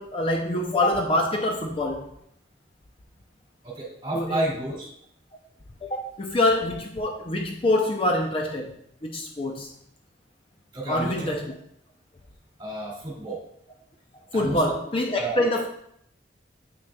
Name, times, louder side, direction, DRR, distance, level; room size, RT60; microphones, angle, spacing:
voice 1, 0.0-2.1 4.1-4.4 5.8-8.7 9.0-9.7 10.9-11.5 14.3-15.7, left 1 dB, 30° left, 2 dB, 0.5 m, -25 dB
voice 2, 3.6-4.9 10.7-11.3 12.6-13.4 14.3-14.7 15.2-15.5, right 1 dB, 25° right, -5 dB, 2.3 m, -31 dB
7.8 x 6.1 x 2.3 m, 0.71 s
head